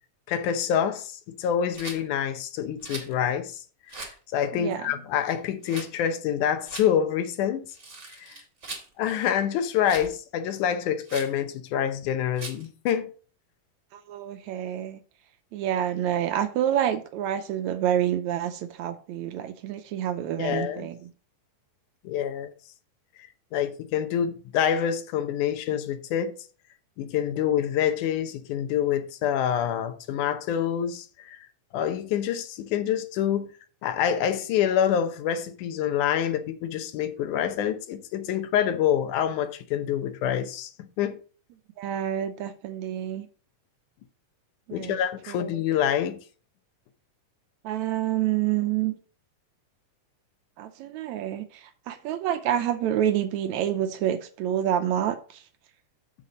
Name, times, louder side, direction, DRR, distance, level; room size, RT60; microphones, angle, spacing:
voice 1, 0.3-3.6 4.3-7.7 8.1-8.4 9.0-13.1 20.4-20.9 22.0-22.5 23.2-26.4 27.0-31.4 31.7-33.5 33.8-41.2 44.7-46.2, left 9 dB, 80° left, 2.3 m, -26 dB
Rattle, 1.7-2.0 2.8-3.1 3.9-4.2 5.6-5.9 6.6-6.9 7.7-8.9 9.8-10.1 11.0-11.3 12.4-12.6, right 3 dB, 30° right, 1.6 m, -39 dB
voice 2, 4.5-4.9 13.9-15.0 15.5-21.1 41.8-43.3 44.7-45.0 45.3-45.5 47.6-49.0 50.6-55.4, right 11 dB, 75° right, 1.8 m, -28 dB
8.1 x 6.7 x 4.0 m
omnidirectional pair, 3.6 m